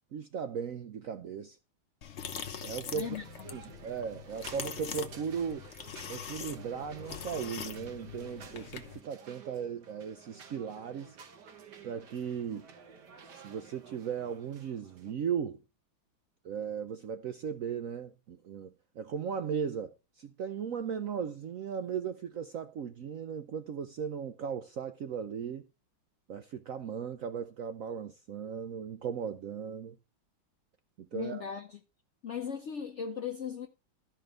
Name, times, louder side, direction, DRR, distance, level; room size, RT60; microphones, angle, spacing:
voice 1, 0.1-1.6 2.6-3.2 3.4-5.7 6.1-11.2 11.8-12.7 13.3-15.6 16.4-25.7 26.3-30.0 31.0-31.4, right 7 dB, 85° right, 0.7 m, -37 dB
sound 1, 2.0-9.0, left 7 dB, 45° left, 1.0 m, -43 dB
sound 2, 3.0-15.1, right 6 dB, 60° right, 1.7 m, -53 dB
voice 2, 31.1-31.8 32.2-33.7, left 7 dB, 65° left, 0.7 m, -38 dB
12.5 x 5.2 x 5.0 m
omnidirectional pair, 2.2 m